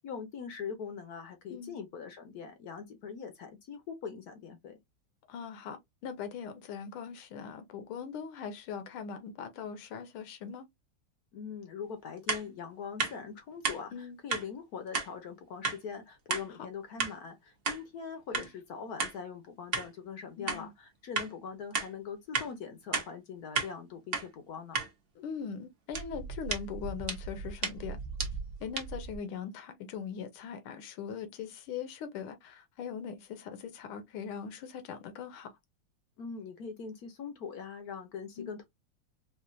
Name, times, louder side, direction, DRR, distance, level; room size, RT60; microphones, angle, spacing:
voice 1, 0.0-4.8 11.3-24.8 36.2-38.6, left 6 dB, 65° left, 0.9 m, -42 dB
voice 2, 5.3-10.7 13.9-14.2 18.3-18.5 20.4-20.7 25.2-28.0 28.6-35.5 38.4-38.5, left 7 dB, 85° left, 1.7 m, -41 dB
sound 1, 12.3-12.4 13.0-13.1 13.6-13.8 14.3-14.4 14.9-15.1 15.6-15.8 16.3-16.4 17.0-17.1 17.6-17.8 18.3-18.5 19.0-19.1 19.7-19.9 20.5-20.6 21.1-21.3 21.7-21.9 22.3-22.5 22.9-23.1 23.5-23.7 24.1-24.3 24.7-24.9 25.9-29.2, right 4 dB, 50° right, 0.7 m, -33 dB
4.6 x 2.5 x 2.6 m
omnidirectional pair, 2.3 m